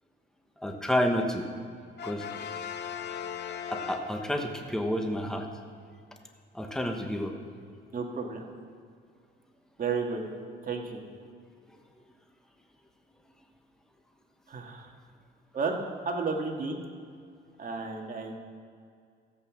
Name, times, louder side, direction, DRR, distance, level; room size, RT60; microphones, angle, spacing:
voice 1, 0.6-1.4 2.0-2.2 3.7-5.5 6.5-7.3, equal, 5° left, 3 dB, 1.2 m, -29 dB
Brass instrument, 2.0-4.6, left 8 dB, 60° left, 1.0 m, -38 dB
voice 2, 7.9-8.4 9.8-10.2 10.6-11.0 14.5-14.9 15.5-16.8 17.6-18.3, right 4 dB, 45° right, 1 dB, 1.9 m, -32 dB
14.5 x 8.3 x 6.1 m, 2.2 s
cardioid pair, 90°, 20 cm